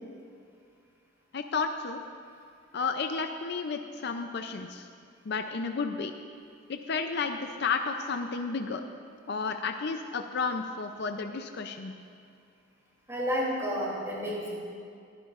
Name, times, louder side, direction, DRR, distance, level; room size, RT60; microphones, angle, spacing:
voice 1, 1.3-2.0 2.7-4.9 5.3-6.1 6.7-8.8 9.3-11.9, left 4 dB, 55° left, 6 dB, 0.5 m, -32 dB
voice 2, 13.1-14.5, equal, 15° right, -5 dB, 2.9 m, -30 dB
20.5 x 11.0 x 2.5 m, 2.3 s
head